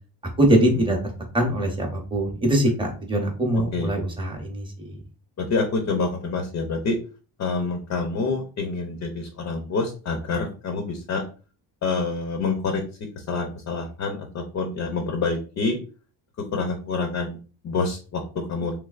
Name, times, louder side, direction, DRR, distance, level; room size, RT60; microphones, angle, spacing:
voice 1, 0.4-1.0 1.3-4.9, right 1 dB, 10° right, 1 dB, 0.7 m, -22 dB
voice 2, 5.4-7.0 7.4-11.2 11.8-12.8 13.2-15.8 16.5-17.4 17.6-18.7, left 3 dB, 40° left, 4 dB, 0.5 m, -27 dB
3.2 x 3.1 x 2.3 m, 0.36 s
cardioid pair, 175°, 44 cm